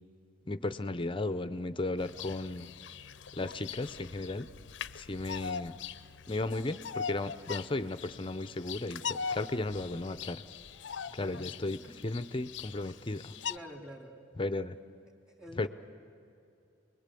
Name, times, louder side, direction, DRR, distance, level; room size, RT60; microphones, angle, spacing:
voice 1, 0.5-2.7 3.3-4.5 5.0-5.7 6.3-10.4 11.1-13.3 14.4-14.7 15.6-15.7, left 2 dB, 30° left, 12 dB, 0.7 m, -35 dB
Bird vocalization bird call bird song, 2.0-13.6, left 6 dB, 80° left, 0.6 m, -42 dB
voice 2, 11.2-11.5 11.8-12.0 13.3-14.2 15.2-15.7, equal, 5° right, 3 dB, 2.6 m, -48 dB
28.5 x 21.5 x 8.5 m, 2.7 s
head